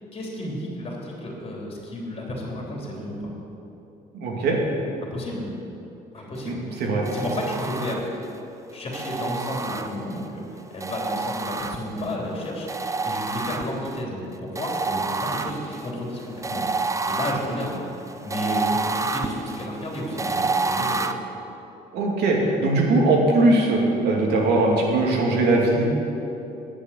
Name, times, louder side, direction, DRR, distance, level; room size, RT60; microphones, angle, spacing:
voice 1, 0.1-3.3 5.0-5.5 6.1-8.1 8.7-10.4 10.7-16.6 17.0-21.0, left 1 dB, 35° left, -2 dB, 3.3 m, -32 dB
voice 2, 4.1-4.6 6.5-7.0 21.9-25.9, right 2 dB, 75° right, -1 dB, 2.6 m, -20 dB
sound 1, 7.1-8.3 8.9-10.3 10.8-12.1 12.7-14.0 14.5-21.1, right 3 dB, 20° right, 0.6 m, -29 dB
10.0 x 8.3 x 8.3 m, 2.9 s
cardioid pair, 110°, 17 cm